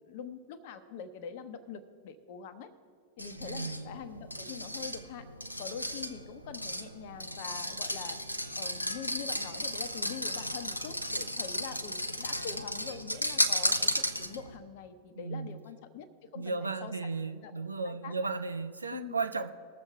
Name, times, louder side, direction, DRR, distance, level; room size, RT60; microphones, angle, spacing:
voice 1, 0.1-2.7 3.2-5.2 5.6-8.2 8.6-16.1 16.3-17.0 17.2-17.5 17.8-18.3 18.9-19.2, left 7 dB, 50° left, 10 dB, 0.9 m, -44 dB
sound 1, 3.2-14.6, equal, 85° left, 0.6 m, -34 dB
voice 2, 3.4-4.0 15.1-15.6 16.4-19.5, right 4 dB, 80° right, 8 dB, 0.6 m, -35 dB
20.0 x 7.3 x 3.5 m, 2.3 s
figure-of-eight pair, 90°, 0 cm